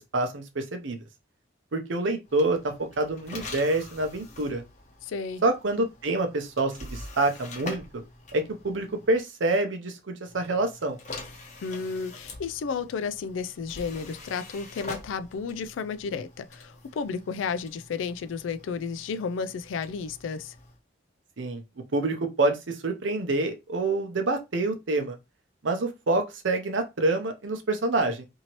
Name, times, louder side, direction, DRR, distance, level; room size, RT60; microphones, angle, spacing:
voice 1, 0.1-1.0 1.7-4.6 5.4-8.0 8.3-11.0 21.4-21.6 21.9-25.2 25.6-28.2, right 2 dB, 85° right, 0.7 m, -27 dB
sound 1, 2.3-9.2 10.2-20.8, left 2 dB, 40° left, 0.7 m, -45 dB
voice 2, 5.0-5.4 11.6-20.5, left 5 dB, 85° left, 0.3 m, -32 dB
2.8 x 2.7 x 2.9 m
head